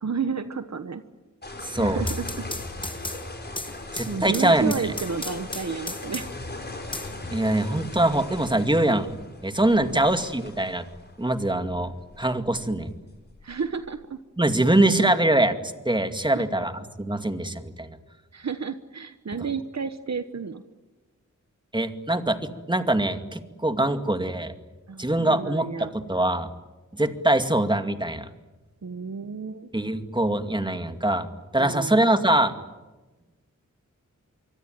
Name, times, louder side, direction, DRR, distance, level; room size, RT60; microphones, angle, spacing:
voice 1, 0.0-1.0 1.8-2.5 4.1-6.3 9.7-10.0 13.4-14.2 16.2-16.4 18.3-20.6 24.9-25.9 28.8-29.7 31.6-32.1, right 5 dB, 60° right, 10 dB, 1.3 m, -31 dB
sound 1, 1.4-14.0, left 2 dB, 35° left, 4.7 m, -38 dB
voice 2, 1.6-2.0 3.9-4.7 7.3-9.1 9.4-10.8 11.2-11.9 12.2-12.9 14.4-15.6 15.9-16.7 17.0-18.0 21.7-24.5 25.0-26.5 26.9-28.3 29.7-31.3 31.5-32.5, right 1 dB, 15° right, 8 dB, 2.3 m, -23 dB
sound 2, 1.8-6.5 6.9-7.9, left 2 dB, 15° left, 1.6 m, -36 dB
25.0 x 25.0 x 9.3 m, 1.2 s
wide cardioid pair, 100°, 31 cm